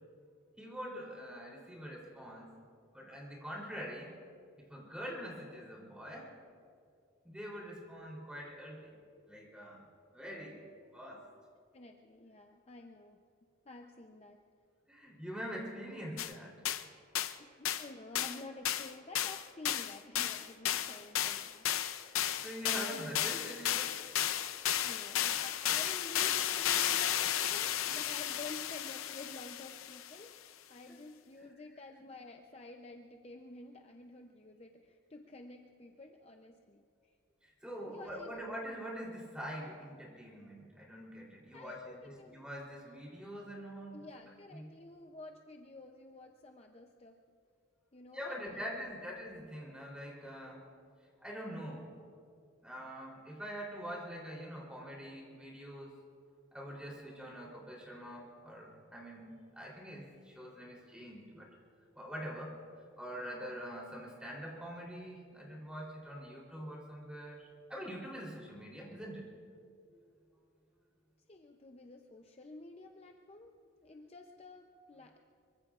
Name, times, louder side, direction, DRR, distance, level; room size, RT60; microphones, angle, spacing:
voice 1, 0.6-2.6 2.9-4.2 4.6-6.3 7.2-9.0 9.3-10.7 10.9-11.2 14.9-16.5 22.1-24.0 37.4-42.0 42.3-44.1 44.5-44.7 48.1-50.8 51.2-52.1 52.6-55.9 56.5-61.6 61.9-62.5 63.0-69.3 69.9-70.0, equal, 5° right, -3 dB, 3.5 m, -44 dB
voice 2, 11.7-13.2 13.7-14.4 17.4-21.7 24.6-37.2 37.9-38.3 41.5-42.4 43.9-47.2 47.9-48.8 63.2-63.4 65.4-65.5 71.3-75.2, left 2 dB, 30° left, 3 dB, 0.6 m, -51 dB
sound 1, 16.2-16.3 16.7-16.8 17.1-17.3 17.6-17.9 18.2-18.4 18.7-30.2, left 11 dB, 90° left, 0.6 m, -34 dB
24.5 x 23.5 x 2.5 m, 2.4 s
head